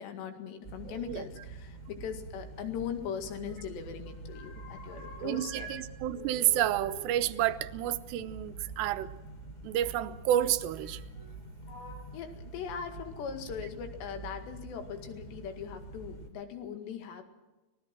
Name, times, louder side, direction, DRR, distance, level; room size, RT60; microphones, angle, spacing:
voice 1, 0.0-5.7 12.1-17.2, left 7 dB, 85° left, 7 dB, 4.2 m, -40 dB
sound 1, 0.6-16.3, right 3 dB, 15° left, 1.4 m, -46 dB
voice 2, 0.9-1.2 5.2-9.1 9.6-11.0, right 12 dB, 90° right, 12 dB, 3.0 m, -30 dB
sound 2, 2.8-3.7 4.0-5.8 6.1-8.6 9.6-9.7 10.7-11.3 11.6-11.9, left 1 dB, 65° left, 5.9 m, -48 dB
24.0 x 19.0 x 6.0 m, 1.1 s
omnidirectional pair, 4.8 m